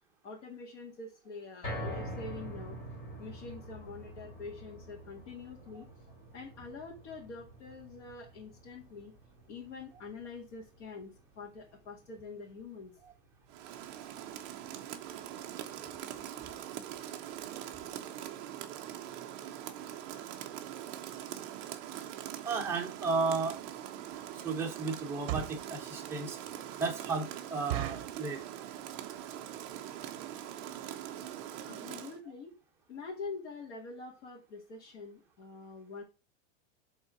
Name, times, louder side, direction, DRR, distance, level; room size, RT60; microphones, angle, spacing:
voice 1, 0.2-2.8 3.2-5.9 6.3-9.1 9.5-13.0 31.6-32.5 32.9-36.0, left 4 dB, 70° left, 2.3 m, -45 dB
sound 1, 1.6-13.9 14.3-14.4 14.8-14.9, equal, 35° left, 3.1 m, -46 dB
Rain, 13.5-32.2, right 11 dB, 25° right, 0.3 m, -43 dB
voice 2, 22.4-23.6 24.4-26.4 26.8-28.4, right 4 dB, 5° right, 0.9 m, -33 dB
sound 2, 24.1-24.3 25.0-25.7 26.2-26.3 26.7-26.8 27.1-27.2 27.7-28.2 28.8-29.1 29.3-29.4 29.7-29.9 30.5-30.6 30.8-31.0 31.3-31.4 31.6-31.7, right 15 dB, 55° right, 0.7 m, -37 dB
5.4 x 3.8 x 5.8 m
supercardioid pair, 170°, 37 cm